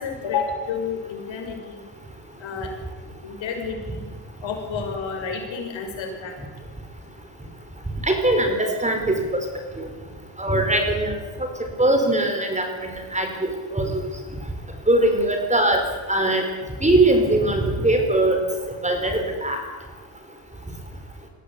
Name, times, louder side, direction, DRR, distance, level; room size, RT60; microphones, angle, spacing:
voice 1, 0.0-1.8 2.4-2.7 3.2-4.0 4.4-6.4, left 5 dB, 65° left, 2 dB, 5.9 m, -30 dB
voice 2, 8.0-9.4 9.8-9.9 10.4-11.2 11.8-14.0 14.9-16.4 16.8-18.4 18.8-19.6, right 1 dB, 15° right, 5 dB, 4.8 m, -21 dB
21.5 x 16.0 x 8.6 m, 1.4 s
cardioid pair, 85°, 49 cm